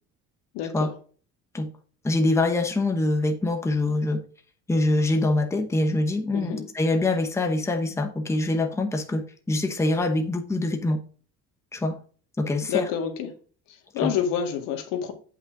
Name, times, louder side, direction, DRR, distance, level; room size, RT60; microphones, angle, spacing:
voice 1, 0.5-0.9 6.3-6.7 12.7-13.3 13.9-15.1, left 8 dB, 80° left, 2.0 m, -28 dB
voice 2, 2.0-4.2 4.7-11.0 11.7-12.0 12.4-12.9 14.0-14.1, left 2 dB, 10° left, 0.9 m, -24 dB
8.3 x 5.7 x 3.7 m
cardioid pair, 150°, 32 cm